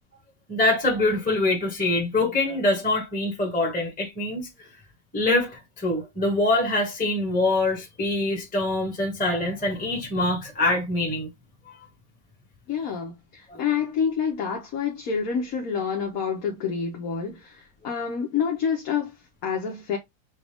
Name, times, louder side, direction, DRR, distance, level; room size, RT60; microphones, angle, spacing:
voice 1, 0.5-4.5 5.1-5.5 5.8-11.3 13.5-13.6, left 2 dB, 5° left, 1.3 m, -24 dB
voice 2, 12.7-20.0, left 7 dB, 60° left, 1.2 m, -28 dB
6.0 x 2.4 x 3.4 m
omnidirectional pair, 1.9 m